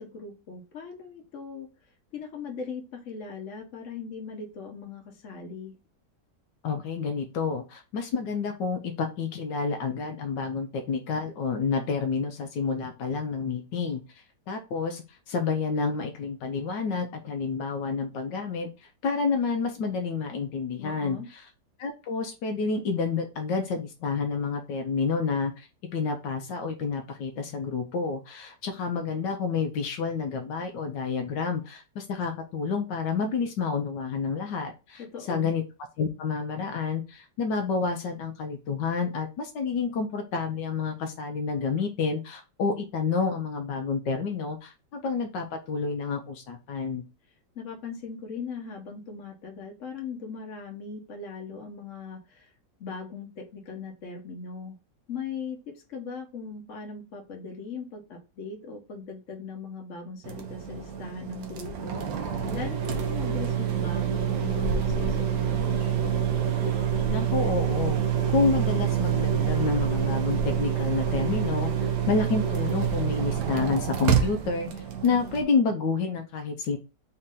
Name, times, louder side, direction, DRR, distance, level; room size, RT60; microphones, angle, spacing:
voice 1, 0.0-1.7 2.1-5.7 20.8-21.3 35.0-35.5 47.5-52.5 52.8-54.8 55.1-62.1 62.5-66.2, left 5 dB, 50° left, 2 dB, 1.3 m, -39 dB
voice 2, 6.6-14.0 14.5-21.4 21.8-25.7 25.9-35.6 36.0-47.0 67.1-68.0 68.3-76.8, left 5 dB, 80° left, 4 dB, 1.4 m, -29 dB
sound 1, 60.2-75.4, right 8 dB, 65° right, 1.1 m, -27 dB
4.3 x 2.9 x 3.7 m, 0.28 s
omnidirectional pair, 1.9 m